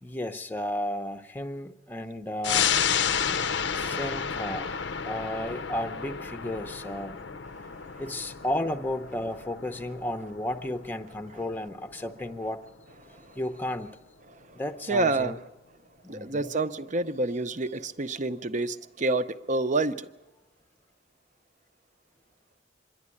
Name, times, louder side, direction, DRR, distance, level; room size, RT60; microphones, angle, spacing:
voice 1, 0.0-2.7 3.7-4.7 5.0-7.2 8.0-12.6 13.3-13.9 14.5-15.4 16.0-16.5, left 1 dB, 10° left, 0.7 m, -33 dB
sound 1, 2.4-13.4 13.8-13.9, left 7 dB, 65° left, 0.6 m, -32 dB
voice 2, 14.9-15.4 16.1-20.1, right 2 dB, 40° right, 0.7 m, -28 dB
25.0 x 11.0 x 9.7 m
head